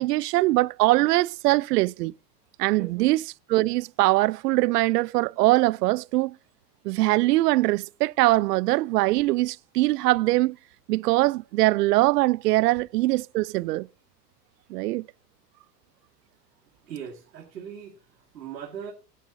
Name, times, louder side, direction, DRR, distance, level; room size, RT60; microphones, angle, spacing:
voice 1, 0.0-2.1 2.6-3.2 3.5-6.3 6.8-10.6 10.9-13.9 14.7-15.0, right 19 dB, 70° right, 0.5 m, -22 dB
voice 2, 2.7-3.1 16.8-18.9, right 8 dB, 85° right, 2.3 m, -40 dB
17.5 x 10.0 x 2.8 m
hypercardioid pair, 105°, 49 cm